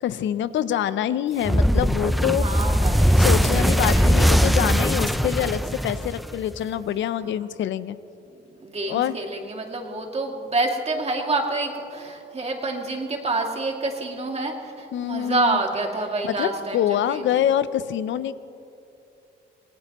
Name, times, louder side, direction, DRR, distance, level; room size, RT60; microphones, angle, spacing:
voice 1, 0.0-2.5 3.2-8.0 8.9-9.2 14.9-15.6 16.2-18.3, left 10 dB, 70° left, 15 dB, 0.6 m, -25 dB
sound 1, 1.4-6.6, equal, ahead, 0.4 m, -20 dB
voice 2, 2.3-4.2 7.2-7.4 8.4-17.4, right 2 dB, 30° right, 1 dB, 2.4 m, -28 dB
25.0 x 18.5 x 3.1 m, 2.7 s
cardioid pair, 90°, 20 cm